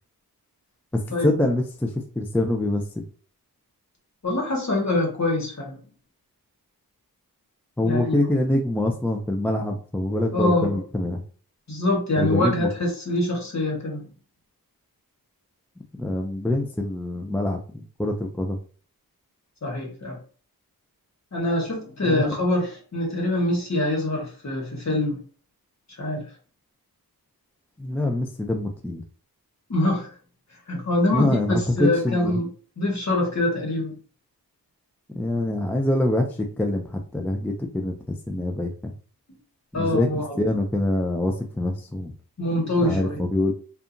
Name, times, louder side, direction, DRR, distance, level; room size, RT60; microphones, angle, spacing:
voice 1, 0.9-1.9 2.2-3.0 7.8-11.2 12.2-12.7 16.0-18.6 22.1-22.2 27.8-29.0 31.1-32.4 35.2-36.3 36.6-37.9 38.3-38.9 39.7-42.1 42.8-43.5, left 1 dB, 5° left, 3 dB, 0.3 m, -25 dB
voice 2, 4.2-5.8 7.8-8.2 10.3-10.8 11.7-14.0 19.6-20.2 21.3-25.2 26.0-26.2 29.7-30.1 30.7-32.5 32.8-33.9 39.7-40.4 42.4-43.2, left 1 dB, 45° left, -1 dB, 1.2 m, -24 dB
2.7 x 2.4 x 2.5 m, 0.40 s
wide cardioid pair, 65°, 38 cm